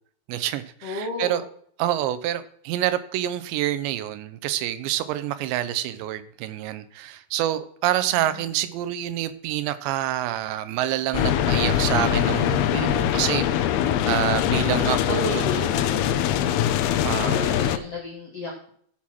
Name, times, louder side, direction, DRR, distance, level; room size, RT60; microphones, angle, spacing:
voice 1, 0.3-1.4 1.8-15.5 17.0-17.6, right 13 dB, 85° right, 13 dB, 3.0 m, -27 dB
voice 2, 0.8-1.5 8.2-8.4 15.1-16.2 17.2-18.7, left 2 dB, 65° left, -2 dB, 1.6 m, -33 dB
sound 1, 11.1-17.8, left 10 dB, 80° left, 2.4 m, -22 dB
14.5 x 6.3 x 5.9 m, 0.63 s
omnidirectional pair, 5.0 m